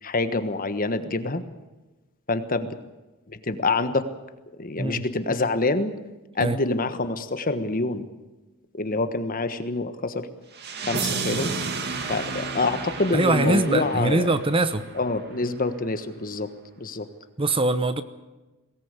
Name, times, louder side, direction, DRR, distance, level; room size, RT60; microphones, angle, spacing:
voice 1, 0.0-1.4 2.3-2.8 3.3-4.1 4.6-5.9 6.3-8.1 8.7-10.3 10.8-11.5 12.1-14.4 14.9-16.5 16.8-17.1, left 3 dB, 40° left, 10 dB, 1.4 m, -26 dB
sound 1, 10.5-15.5, right 4 dB, 50° right, 2.3 m, -32 dB
voice 2, 13.1-14.8 17.4-18.0, right 2 dB, 25° right, 12 dB, 0.9 m, -22 dB
22.5 x 18.0 x 8.2 m, 1.1 s
head